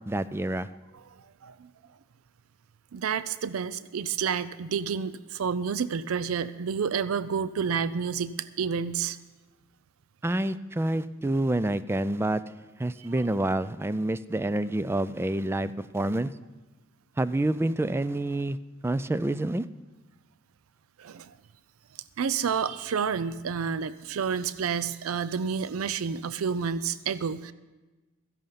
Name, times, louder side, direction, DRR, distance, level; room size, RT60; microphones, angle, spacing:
voice 1, 0.1-0.7 10.2-12.4 12.8-16.3 17.2-18.6 18.8-19.6, right 1 dB, 10° right, 15 dB, 0.3 m, -28 dB
voice 2, 2.9-9.2 21.0-21.3 22.2-27.5, right 6 dB, 85° right, 16 dB, 0.5 m, -29 dB
14.0 x 10.5 x 5.7 m, 1.2 s
head